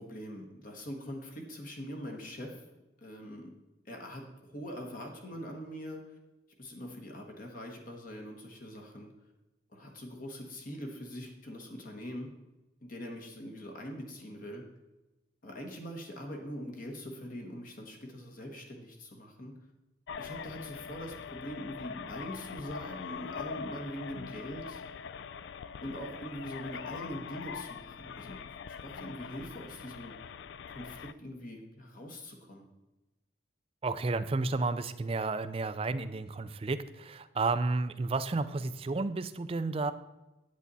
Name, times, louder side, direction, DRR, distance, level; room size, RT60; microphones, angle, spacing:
voice 1, 0.0-2.6 3.0-3.5 3.8-6.2 6.6-9.1 9.7-12.3 12.8-14.6 15.4-19.5 20.2-24.8 25.8-28.4 28.7-30.1 30.7-32.6, equal, 45° left, 1 dB, 1.2 m, -43 dB
sound 1, 20.1-31.1, left 6 dB, 60° left, 0.3 m, -43 dB
voice 2, 33.8-39.9, right 3 dB, 30° right, 12 dB, 0.4 m, -32 dB
8.8 x 8.3 x 4.1 m, 1.0 s
head